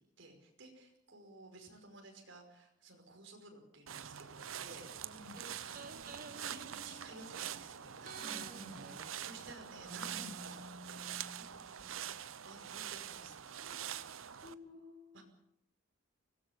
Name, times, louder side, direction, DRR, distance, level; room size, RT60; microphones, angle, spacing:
voice 1, 0.2-4.3 4.6-4.9 5.6-8.4 8.7-8.9 9.2-10.6 11.1-13.4 15.1-15.2, right 2 dB, 60° right, 3 dB, 5.5 m, -55 dB
sound 1, 3.9-14.5, right 9 dB, 80° right, 0.8 m, -45 dB
sound 2, 4.7-7.6 8.0-11.9 12.1-12.2, right 2 dB, 45° right, 1.5 m, -53 dB
voice 2, 5.1-5.4 8.1-8.7 10.1-10.3 13.5-14.1 14.3-15.2, left 2 dB, 25° left, -2 dB, 4.9 m, -53 dB
24.5 x 18.0 x 7.2 m, 0.75 s
head